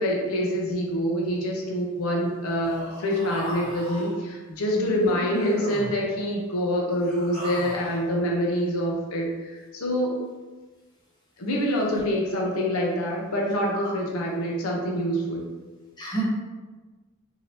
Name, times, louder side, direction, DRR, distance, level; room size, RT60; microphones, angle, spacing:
voice 1, 0.0-10.2 11.4-15.4, equal, 80° left, -2 dB, 0.6 m, -26 dB
Human voice, 2.6-4.1 5.1-6.0 6.9-8.0, equal, 5° left, 1.1 m, -36 dB
voice 2, 4.7-5.0 11.9-12.1 13.7-13.9 16.0-16.2, right 2 dB, 20° left, -6 dB, 0.7 m, -31 dB
2.8 x 2.6 x 3.1 m, 1.3 s
head